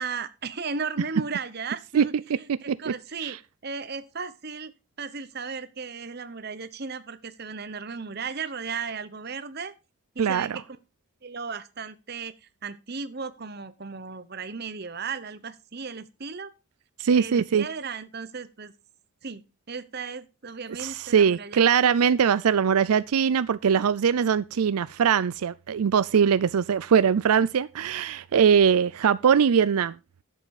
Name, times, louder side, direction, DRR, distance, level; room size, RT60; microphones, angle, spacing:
voice 1, 0.0-3.4 3.6-4.7 5.0-9.7 10.1-10.6 11.2-12.3 12.6-16.5 17.1-18.7 19.2-19.4 19.7-21.6, right 5 dB, 45° right, 0.9 m, -35 dB
voice 2, 2.5-2.9 3.2-3.4 10.2-10.6 17.0-17.7 20.8-29.9, right 7 dB, 85° right, 0.4 m, -21 dB
11.5 x 7.7 x 4.8 m
head